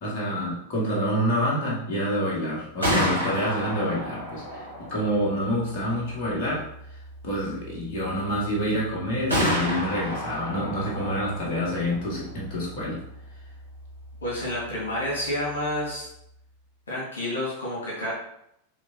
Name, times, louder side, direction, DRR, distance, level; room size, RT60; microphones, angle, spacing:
voice 1, 0.0-6.6 7.2-13.0, equal, 45° left, -5 dB, 2.3 m, -27 dB
Gunshot gunfire, 2.6-16.4, equal, 90° right, 2.2 m, -33 dB
voice 2, 14.2-16.0 16.9-18.1, left 1 dB, 70° left, -5 dB, 2.1 m, -29 dB
9.6 x 3.5 x 3.0 m, 0.76 s
figure-of-eight pair, 90°, 0 cm